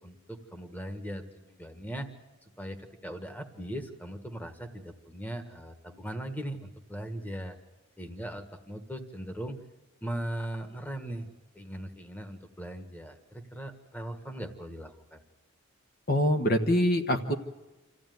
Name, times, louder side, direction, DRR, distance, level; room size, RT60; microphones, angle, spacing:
voice 1, 0.0-2.1 2.4-7.6 8.0-9.6 10.0-11.3 11.5-15.2, right 1 dB, 10° left, 7 dB, 1.5 m, -39 dB
voice 2, 16.1-17.3, equal, 45° left, 5 dB, 1.3 m, -24 dB
27.0 x 15.0 x 9.4 m, 1.1 s
head